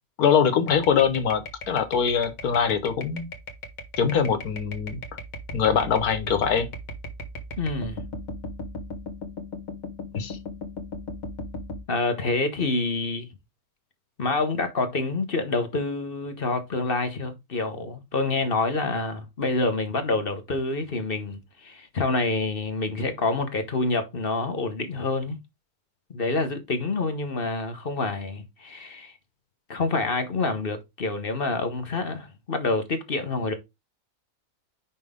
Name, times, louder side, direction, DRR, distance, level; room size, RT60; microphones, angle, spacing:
voice 1, 0.2-3.2 4.0-5.0 5.5-6.7 10.1-10.4, left 7 dB, 80° left, 1.6 m, -23 dB
sound 1, 0.7-11.8, left 1 dB, 65° left, 1.9 m, -37 dB
voice 2, 7.6-8.0 11.9-13.3 14.2-25.4 26.1-29.1 29.7-33.5, left 3 dB, 40° left, 1.2 m, -27 dB
5.9 x 5.5 x 3.6 m
omnidirectional pair, 1.5 m